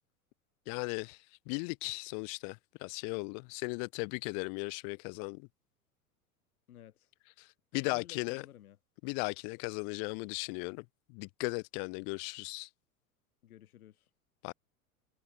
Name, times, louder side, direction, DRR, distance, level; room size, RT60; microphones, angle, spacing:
voice 1, 0.7-1.2 1.5-5.5 7.7-8.4 9.0-10.8 11.1-12.7 14.4-14.5, left 40 dB or more, 35° left, 0.5 m, -37 dB
voice 2, 6.7-7.1 7.7-8.8 13.4-14.1, left 12 dB, 75° left, 1.2 m, -54 dB
figure-of-eight pair, 85°, 44 cm